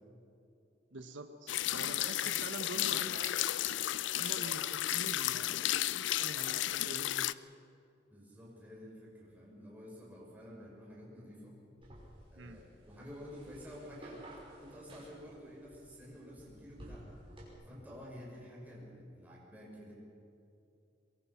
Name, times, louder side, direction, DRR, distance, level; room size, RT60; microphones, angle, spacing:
voice 1, 0.9-3.3 4.1-7.3 12.3-12.7, right 2 dB, 85° right, 7 dB, 1.2 m, -46 dB
sound 1, 1.5-7.3, left 13 dB, 75° left, 0.4 m, -33 dB
voice 2, 2.6-2.9 8.1-11.6 12.3-14.2 14.6-17.1 17.7-19.9, equal, 10° right, -4 dB, 6.0 m, -50 dB
sound 2, 11.8-17.5, right 1 dB, 30° right, 5.7 m, -54 dB
23.0 x 22.5 x 5.9 m, 2.6 s
head